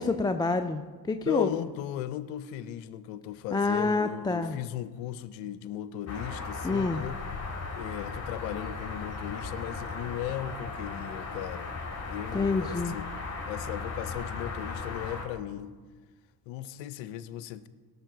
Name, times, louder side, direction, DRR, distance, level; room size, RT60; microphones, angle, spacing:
voice 1, 0.0-1.5 3.5-4.6 6.6-7.0 12.3-13.0, left 3 dB, 10° left, 8 dB, 0.4 m, -27 dB
voice 2, 1.2-7.2 7.7-11.7 12.1-13.1 13.4-15.7 16.5-17.7, left 12 dB, 70° left, 15 dB, 0.7 m, -36 dB
sound 1, 6.1-15.3, left 4 dB, 30° left, 3.1 m, -37 dB
17.0 x 6.7 x 4.0 m, 1.4 s
hypercardioid pair, 55°, 49 cm